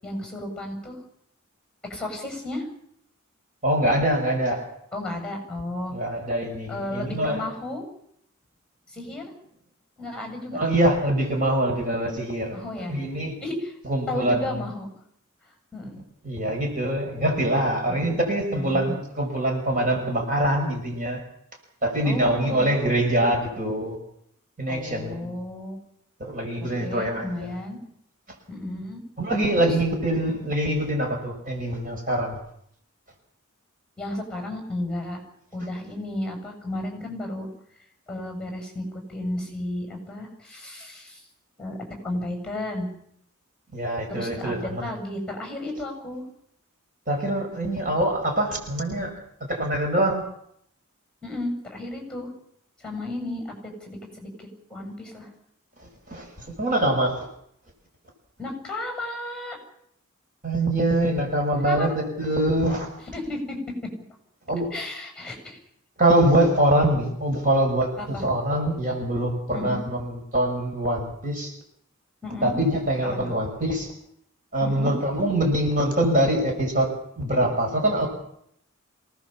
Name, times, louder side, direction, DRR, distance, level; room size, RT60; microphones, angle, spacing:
voice 1, 0.0-1.0 1.9-2.7 4.9-5.9 6.7-7.8 8.9-9.3 10.0-10.6 12.5-13.0 13.4-13.8 14.1-14.9 15.7-16.0 17.9-18.2 18.6-18.9 22.0-22.8 24.7-25.8 26.6-27.8 28.5-29.0 29.5-29.8 34.0-35.2 35.5-37.5 38.1-41.2 41.6-42.9 44.1-46.2 51.2-52.3 52.8-54.3 54.7-55.3 58.4-59.6 61.6-62.0 63.1-63.9 64.7-65.6 68.0-68.3 69.5-69.8 72.2-72.5 73.1-73.4 74.6-74.9, left 1 dB, 5° left, 3 dB, 7.3 m, -33 dB
voice 2, 3.6-4.6 5.9-7.4 10.5-12.6 12.9-13.3 13.9-14.6 16.2-21.2 21.8-24.0 24.6-25.3 26.2-27.5 29.2-32.4 43.7-44.8 47.1-49.1 49.5-50.2 56.1-57.3 60.4-62.9 64.5-64.7 66.0-67.9 68.2-71.5 72.4-73.9 74.5-76.9 77.2-78.1, right 1 dB, 40° right, 1 dB, 5.9 m, -24 dB
26.5 x 19.0 x 7.3 m, 0.71 s
head